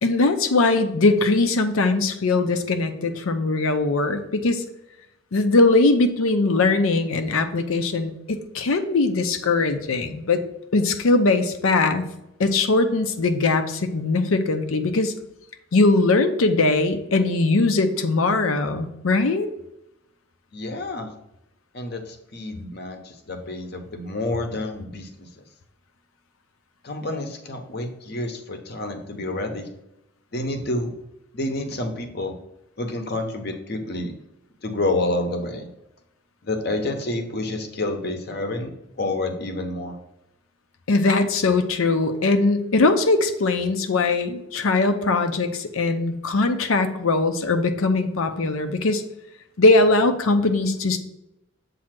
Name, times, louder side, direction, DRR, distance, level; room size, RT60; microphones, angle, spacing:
voice 1, 0.0-4.6 5.3-10.4 10.7-12.0 12.4-15.1 15.7-19.5 40.9-49.0 49.6-51.0, left 3 dB, 80° left, 7 dB, 0.6 m, -20 dB
voice 2, 20.5-21.1 21.7-25.3 26.8-29.7 30.3-30.9 31.3-32.4 32.8-34.1 34.6-35.7 36.4-40.0, left 2 dB, 50° left, 5 dB, 0.9 m, -29 dB
7.5 x 2.8 x 5.8 m, 0.87 s
head